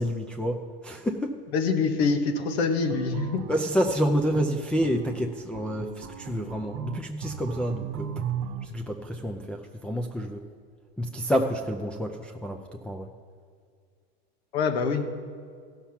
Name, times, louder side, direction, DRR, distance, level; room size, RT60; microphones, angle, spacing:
voice 1, 0.0-1.3 3.5-8.1 8.6-10.4 11.0-13.1, equal, 5° left, 1 dB, 0.4 m, -28 dB
voice 2, 1.5-3.4 14.5-15.1, left 5 dB, 80° left, 5 dB, 1.4 m, -25 dB
sound 1, 2.9-8.7, right 8 dB, 45° right, 0.8 m, -36 dB
14.5 x 5.8 x 5.8 m, 2.1 s
supercardioid pair, 120°, 32 cm